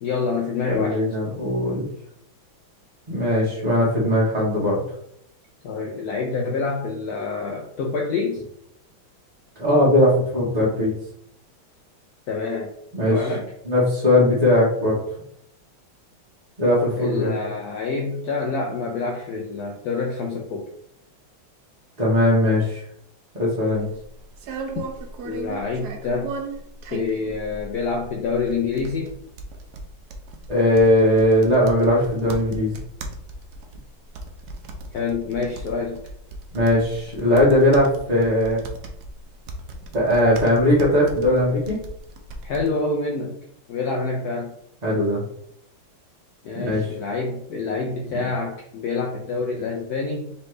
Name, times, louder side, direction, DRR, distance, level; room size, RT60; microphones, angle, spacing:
voice 1, 0.0-1.0 5.6-8.4 12.3-12.7 13.1-13.5 17.0-20.7 25.2-26.3 26.9-29.1 34.9-36.0 42.4-43.3 43.7-44.5 46.4-50.3, left 4 dB, 90° left, 1 dB, 0.8 m, -27 dB
voice 2, 0.7-1.9 3.1-4.8 9.6-10.9 12.9-13.2 13.7-15.0 16.6-17.4 22.0-22.8 23.3-23.9 30.5-32.7 36.5-38.6 39.9-41.8 44.8-45.2 46.5-46.9, left 1 dB, 35° right, -7 dB, 0.7 m, -19 dB
sound 1, 23.7-42.7, right 2 dB, 75° right, 0.9 m, -37 dB
4.1 x 3.1 x 3.1 m, 0.72 s
omnidirectional pair, 2.3 m